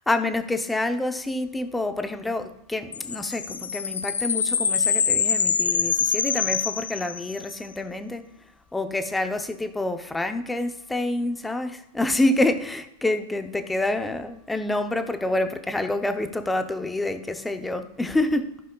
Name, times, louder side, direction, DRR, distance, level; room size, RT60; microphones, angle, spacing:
voice 1, 0.1-8.2 8.7-18.6, left 2 dB, 5° left, 0.7 m, -27 dB
sound 1, 2.9-7.5, left 6 dB, 90° left, 0.4 m, -25 dB
16.0 x 5.3 x 2.4 m
hypercardioid pair, 115°, 0 cm